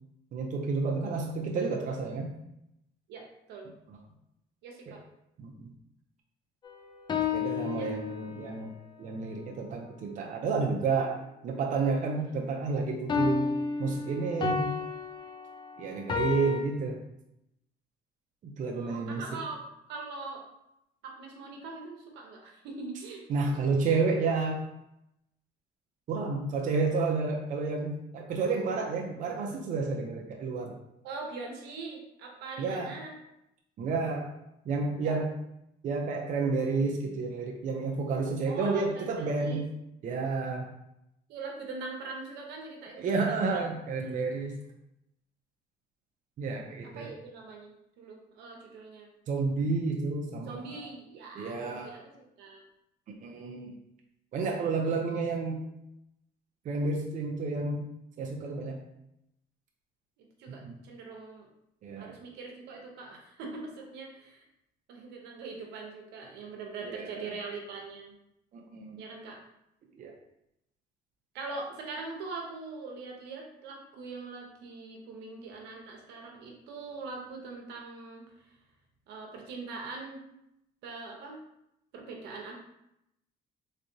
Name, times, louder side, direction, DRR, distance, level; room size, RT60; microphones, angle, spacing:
voice 1, 0.3-2.3 3.9-4.0 4.9-5.0 5.4-5.7 7.3-8.7 9.0-11.2 11.4-13.5 13.8-14.7 15.8-17.0 18.4-19.2 23.3-24.6 26.1-30.7 32.6-33.0 33.8-34.3 34.7-35.3 35.8-39.6 40.0-40.7 43.0-44.6 46.4-47.1 49.3-50.9 51.4-51.9 53.1-53.7 54.3-55.6 56.6-57.8 58.2-58.8 60.5-60.8 61.8-62.2 66.8-67.3 68.5-69.0 70.0-70.2, right 4 dB, 50° right, 1 dB, 0.6 m, -30 dB
voice 2, 3.1-3.7 4.6-5.0 7.8-8.0 12.3-12.6 18.7-19.6 19.9-20.4 21.0-23.2 23.5-23.7 31.0-33.2 35.0-35.2 38.4-39.6 41.3-43.7 44.0-44.1 46.8-47.7 48.0-49.1 50.4-52.1 52.4-52.6 60.2-61.5 62.0-64.4 64.9-68.2 69.0-69.4 71.3-78.6 79.1-80.2 80.8-81.4 81.9-82.6, right 3 dB, 85° right, 1 dB, 0.8 m, -42 dB
sound 1, 6.6-8.5 13.1-16.6, left 5 dB, 25° left, 0.5 m, -32 dB
3.6 x 3.2 x 2.7 m, 0.82 s
cardioid pair, 110°, 17 cm